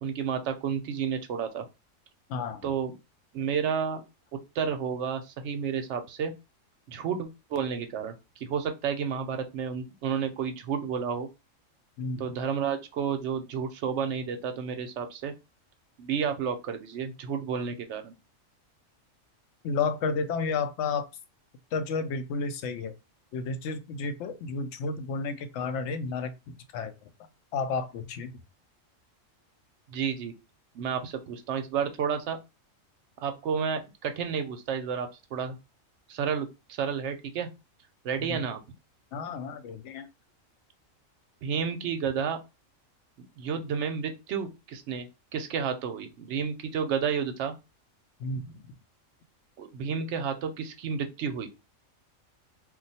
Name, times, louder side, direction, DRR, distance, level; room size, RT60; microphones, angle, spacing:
voice 1, 0.0-1.7 2.6-2.9 3.3-4.0 4.5-6.3 6.9-11.3 12.2-15.3 16.0-18.1 29.9-30.3 30.7-32.4 33.2-35.6 36.1-37.5 38.0-38.6 41.4-42.4 43.2-47.5 49.6-51.5, right 7 dB, 70° right, 0.8 m, -31 dB
voice 2, 2.3-2.6 12.0-12.2 19.6-21.1 21.7-22.9 23.3-27.1 27.5-28.3 38.3-38.4 39.1-40.1 48.2-48.7, left 4 dB, 70° left, 0.8 m, -32 dB
2.4 x 2.2 x 4.0 m
omnidirectional pair, 1.4 m